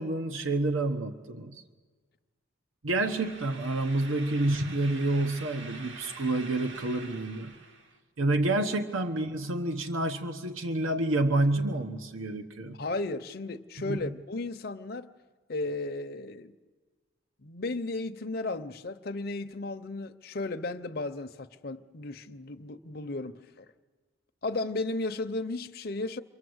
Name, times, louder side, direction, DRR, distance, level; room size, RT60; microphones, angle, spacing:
voice 1, 0.0-1.6 2.8-7.5 8.2-12.8 13.8-14.1, right 2 dB, 90° right, 1.2 m, -29 dB
sound 1, 3.0-8.0, right 3 dB, 75° right, 1.9 m, -46 dB
voice 2, 12.7-15.1 15.5-16.5 17.4-23.6 24.4-26.2, left 2 dB, 50° left, 0.7 m, -34 dB
27.5 x 23.5 x 8.0 m
head